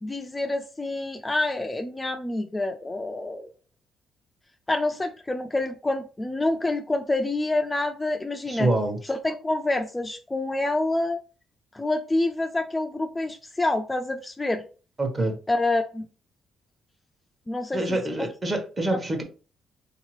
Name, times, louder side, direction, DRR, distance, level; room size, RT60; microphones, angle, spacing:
voice 1, 0.0-3.5 4.7-8.7 9.0-11.2 11.7-14.6 15.5-16.1 17.5-18.3 18.9-19.0, left 2 dB, 15° left, 5 dB, 0.4 m, -27 dB
voice 2, 8.5-9.0 15.0-15.3 17.7-19.2, right 2 dB, 30° right, 4 dB, 1.1 m, -26 dB
3.8 x 2.8 x 3.1 m, 0.36 s
cardioid pair, 90°, 0 cm